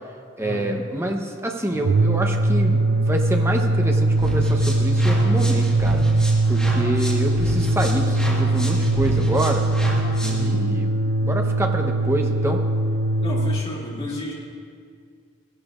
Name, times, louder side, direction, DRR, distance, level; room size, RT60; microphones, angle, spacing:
voice 1, 0.4-6.0 6.5-9.6 10.2-10.9 11.2-12.6, right 1 dB, 15° right, 2 dB, 0.8 m, -27 dB
sound 1, 1.7-13.7, right 2 dB, 80° right, 0.5 m, -21 dB
sound 2, 4.2-10.5, equal, 5° left, 1.5 m, -29 dB
voice 2, 10.3-10.6 13.2-14.3, equal, 30° left, -6 dB, 2.5 m, -31 dB
16.5 x 11.5 x 2.5 m, 2.1 s
head